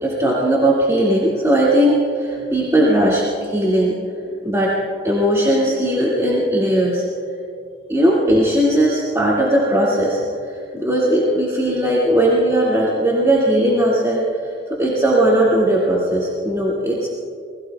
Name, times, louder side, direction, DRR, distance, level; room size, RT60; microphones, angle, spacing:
voice 1, 0.0-4.0 4.4-4.7 5.0-7.1 7.9-10.2 10.5-14.2 14.7-17.1, right 1 dB, 15° right, -7 dB, 2.1 m, -18 dB
27.5 x 21.0 x 2.3 m, 2.3 s
head